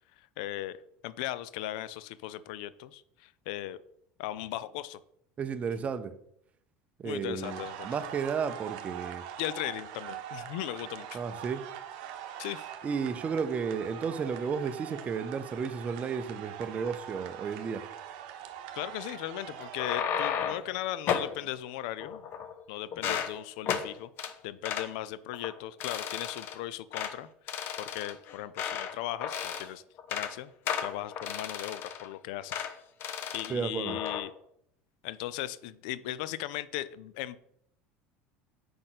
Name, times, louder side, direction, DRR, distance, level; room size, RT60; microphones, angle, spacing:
voice 1, 0.2-0.8 1.0-3.8 4.2-5.0 7.0-7.9 9.4-11.2 12.4-12.6 18.7-22.2 22.7-29.8 30.1-30.5 30.8-32.6 33.3-34.3 35.0-37.4, left 14 dB, 75° left, 0.4 m, -37 dB
voice 2, 5.4-6.2 7.0-9.3 11.1-11.7 12.8-17.8 33.5-34.0, right 6 dB, 30° right, 0.6 m, -33 dB
sound 1, 7.4-20.0, right 10 dB, 75° right, 0.8 m, -43 dB
sound 2, 19.6-20.7 21.1-21.3 22.0-22.6 22.9-23.3 23.7-23.9 24.2-24.3 24.6-24.9 25.3-25.5 25.8-26.6 26.9-27.1 27.5-28.9 29.2-29.7 30.0-30.3 30.7-32.1 32.5-32.7 33.0-33.5 33.8-34.2, left 8 dB, 50° left, 0.8 m, -33 dB
5.1 x 4.1 x 5.9 m
supercardioid pair, 105°, 5 cm